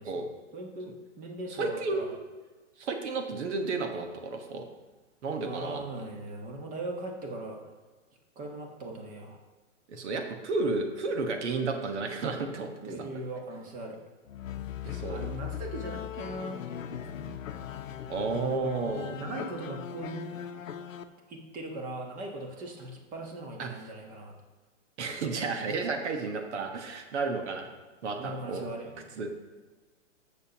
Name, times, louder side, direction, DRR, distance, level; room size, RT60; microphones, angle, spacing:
voice 1, 0.0-2.1 5.4-7.7 8.3-9.4 12.8-14.0 14.8-17.3 19.2-20.3 21.3-24.3 28.2-29.1, right 2 dB, 20° right, 2 dB, 1.3 m, -40 dB
voice 2, 1.6-2.2 2.8-4.7 5.2-5.8 9.9-12.7 13.0-13.1 14.8-15.2 18.1-19.2 23.6-23.7 25.0-27.7 28.0-28.6 29.2-29.3, right 3 dB, 65° right, 4 dB, 1.4 m, -32 dB
sound 1, 14.3-21.0, left 9 dB, 90° left, 0.8 m, -39 dB
13.5 x 6.8 x 2.9 m, 1.3 s
hypercardioid pair, 140°, 38 cm